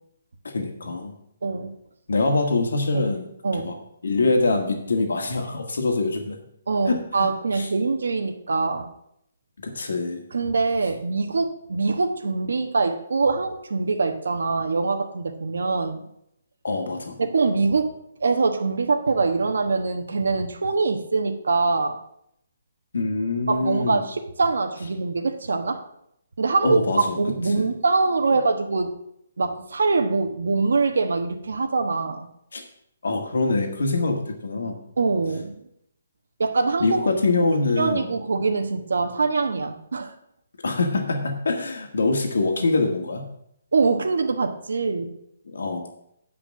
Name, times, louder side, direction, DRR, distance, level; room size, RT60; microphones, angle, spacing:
voice 1, 0.4-1.1 2.1-3.3 3.6-3.8 4.0-6.4 6.9-7.3 7.5-7.7 9.6-10.2 16.6-17.2 22.9-24.0 26.6-27.2 27.6-27.7 32.5-32.6 33.0-34.8 36.8-38.1 40.6-43.3 45.5-45.9, left 3 dB, 90° left, 4 dB, 1.7 m, -24 dB
voice 2, 1.4-1.7 2.9-3.0 3.4-3.8 6.7-8.9 10.3-16.1 17.2-17.9 18.2-22.0 23.5-25.8 26.4-26.8 27.2-28.9 29.4-32.3 35.0-35.6 36.4-37.1 37.8-40.1 43.7-45.1, right 4 dB, 90° right, 5 dB, 1.2 m, -23 dB
8.8 x 5.2 x 7.3 m, 0.75 s
hypercardioid pair, 180°, 0 cm